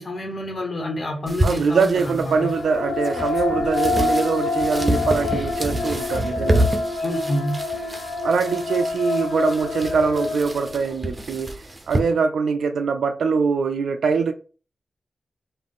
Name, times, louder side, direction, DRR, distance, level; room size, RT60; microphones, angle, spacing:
voice 1, 0.0-2.5 7.0-7.6, left 1 dB, 50° left, 1.4 m, -28 dB
sound 1, 1.3-12.0, right 1 dB, 30° right, 0.8 m, -28 dB
voice 2, 1.4-6.7 8.2-11.5 11.9-14.3, right 5 dB, 85° right, 0.3 m, -23 dB
sound 2, 2.0-11.2, left 3 dB, 85° left, 0.6 m, -27 dB
3.6 x 2.5 x 3.6 m
cardioid pair, 50°, 0 cm